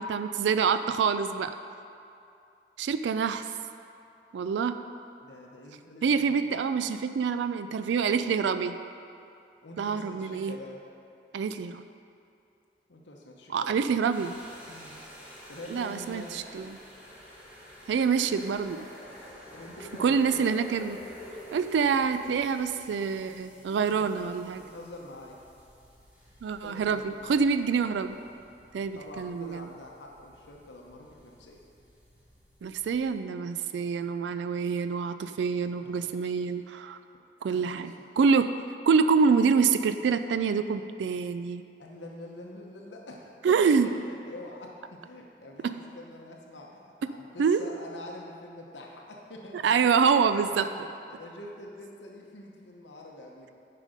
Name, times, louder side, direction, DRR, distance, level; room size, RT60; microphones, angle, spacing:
voice 1, 0.0-1.5 2.8-3.5 4.3-4.8 6.0-8.8 9.8-10.5 11.3-11.8 13.5-14.4 15.7-16.8 17.9-18.9 20.0-21.0 21.5-24.6 26.4-28.2 28.7-29.7 32.6-37.0 37.4-38.5 38.9-41.6 43.4-43.9 45.6-45.8 47.4-47.6 49.6-50.7, right 5 dB, 85° right, 10 dB, 0.3 m, -26 dB
voice 2, 5.2-6.5 9.6-10.8 12.9-13.8 14.7-15.0 15.5-16.4 19.5-20.4 23.7-24.2 24.6-25.4 26.6-27.4 28.9-31.6 35.8-36.5 37.5-38.1 41.8-50.0 51.1-53.5, left 1 dB, 85° left, 0 dB, 0.9 m, -46 dB
sound 1, 14.1-33.1, equal, 10° right, 1.4 m, -49 dB
10.0 x 5.0 x 5.1 m, 2.5 s
head